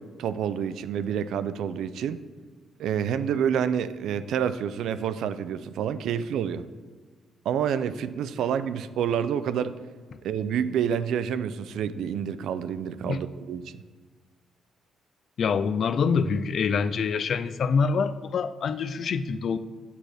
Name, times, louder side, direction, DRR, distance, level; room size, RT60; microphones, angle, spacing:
voice 1, 0.0-2.2 2.8-6.6 7.5-9.8 10.2-13.7, right 8 dB, 75° right, 13 dB, 0.3 m, -28 dB
voice 2, 15.4-19.6, left 5 dB, 55° left, 13 dB, 0.4 m, -25 dB
8.3 x 6.1 x 3.3 m, 1.4 s
cardioid pair, 90°, 0 cm